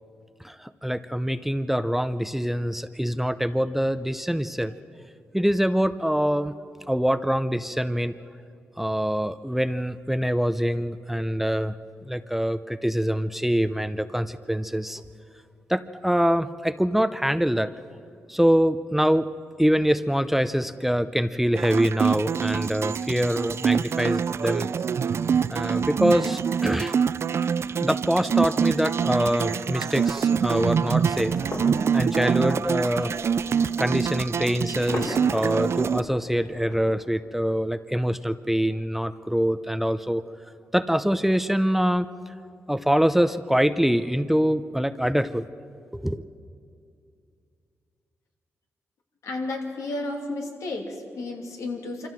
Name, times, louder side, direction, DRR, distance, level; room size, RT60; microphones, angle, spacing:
voice 1, 0.4-4.7 5.3-6.5 6.9-8.2 8.8-11.7 12.0-15.0 15.7-17.7 18.3-19.3 19.6-24.7 25.5-26.9 27.8-31.4 31.9-33.2 33.8-40.2 40.7-42.1 42.7-45.5 45.9-46.2, equal, 5° right, 12 dB, 0.7 m, -24 dB
sound 1, 21.5-36.0, right 7 dB, 60° right, 0.4 m, -25 dB
sound 2, 30.1-36.8, left 2 dB, 65° left, 5.4 m, -39 dB
voice 2, 49.2-52.1, left 2 dB, 80° left, 1 dB, 2.8 m, -32 dB
25.0 x 14.5 x 7.6 m, 2.4 s
cardioid pair, 60°, 5 cm